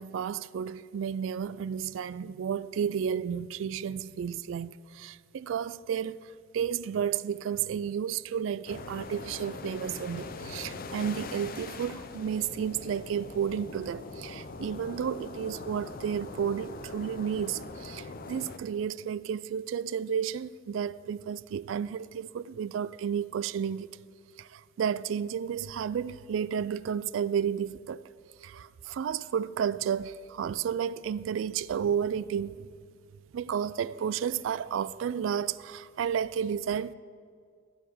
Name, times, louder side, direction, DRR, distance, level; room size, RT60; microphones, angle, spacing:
voice 1, 0.0-24.0 24.4-28.0 28.4-32.7 33.3-36.9, right 8 dB, 70° right, 0.3 m, -32 dB
sound 1, 8.7-18.6, left 3 dB, 45° left, 0.6 m, -42 dB
13.5 x 4.9 x 7.7 m
head